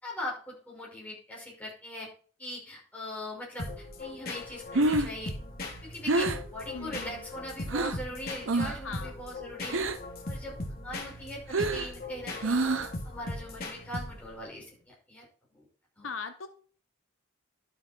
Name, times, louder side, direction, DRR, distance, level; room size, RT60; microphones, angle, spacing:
voice 1, 0.0-2.1 2.4-5.3 5.8-9.8 10.3-10.5 10.8-12.7 13.0-15.2 15.5-15.7 16.0-16.1, left 1 dB, 10° left, -4 dB, 5.7 m, -41 dB
sound 1, 3.6-14.5, left 2 dB, 50° left, 2.6 m, -39 dB
Breathing, 4.5-8.1 8.4-8.9 9.2-10.2 10.5-13.1, right 2 dB, 75° right, 0.9 m, -29 dB
voice 2, 6.7-7.2 8.8-9.1 16.0-16.5, left 5 dB, 80° left, 7 dB, 1.1 m, -39 dB
11.5 x 7.8 x 4.6 m, 0.43 s
head